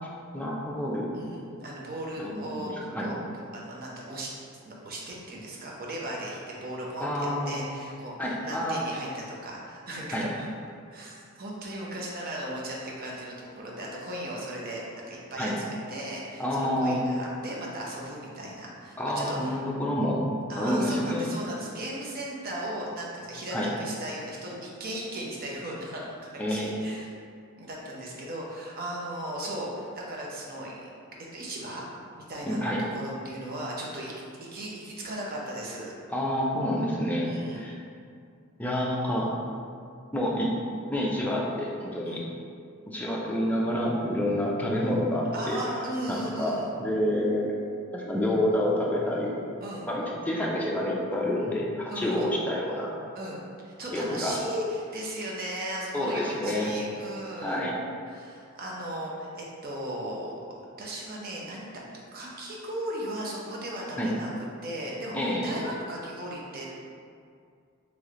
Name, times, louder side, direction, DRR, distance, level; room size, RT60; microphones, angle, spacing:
voice 1, 0.3-1.1 2.2-2.6 2.9-3.1 7.0-7.6 8.2-8.8 10.1-10.3 15.4-15.6 16.4-17.0 19.0-20.2 20.6-21.3 23.5-23.7 26.4-26.9 32.5-32.8 36.1-37.7 38.6-39.3 40.1-40.5 40.9-42.2 42.9-45.6 46.1-47.5 47.9-49.4 49.9-52.9 53.9-54.4 55.9-56.7 57.4-57.8 64.0-64.1 65.1-65.5, left 1 dB, 5° left, -4 dB, 0.4 m, -28 dB
voice 2, 1.1-3.2 3.5-4.3 4.6-10.5 10.9-19.6 20.5-27.1 27.6-30.9 31.3-31.9 32.2-34.1 34.4-35.9 37.2-37.6 42.0-42.2 45.3-46.7 49.6-49.9 51.9-52.3 53.1-57.6 58.1-60.4 60.8-61.8 62.1-64.3 64.6-66.7, right 1 dB, 45° right, -4 dB, 0.7 m, -37 dB
3.1 x 3.1 x 3.7 m, 2.3 s
head